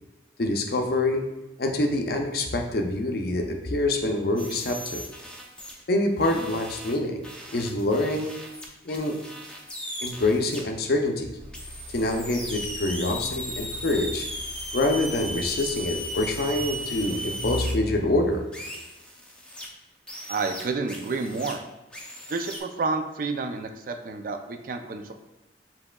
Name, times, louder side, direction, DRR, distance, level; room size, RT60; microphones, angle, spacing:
voice 1, 0.4-1.2 1.6-5.1 5.9-7.2 7.5-8.3 8.8-9.1 10.0-11.3 11.9-14.3 14.7-18.4, left 2 dB, 55° left, 3 dB, 0.5 m, -26 dB
sound 1, 4.4-5.8 6.2-10.6 11.5-17.7 18.5-19.7 20.1-21.5 21.9-22.6, equal, 5° left, 0.5 m, -37 dB
sound 2, 11.4-18.4, left 1 dB, 25° right, 1.0 m, -38 dB
voice 2, 20.3-21.6 22.3-25.1, right 4 dB, 50° right, 6 dB, 0.4 m, -30 dB
7.3 x 2.9 x 2.2 m, 1.0 s
head